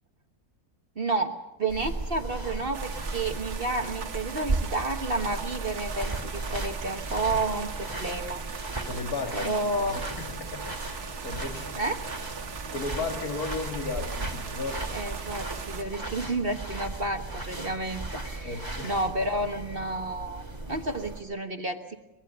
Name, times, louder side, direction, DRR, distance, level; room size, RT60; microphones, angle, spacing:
voice 1, 1.0-8.4 9.3-10.1 11.8-12.0 14.9-18.6 18.8-22.0, right 2 dB, 40° right, 1.4 m, -31 dB
sound 1, 1.7-21.2, right 2 dB, 15° right, 2.6 m, -36 dB
sound 2, 2.7-15.8, right 6 dB, 80° right, 1.9 m, -40 dB
voice 2, 8.8-11.8 12.7-14.9 18.4-19.1, left 3 dB, 75° left, 2.5 m, -35 dB
24.0 x 21.5 x 6.9 m
omnidirectional pair, 1.6 m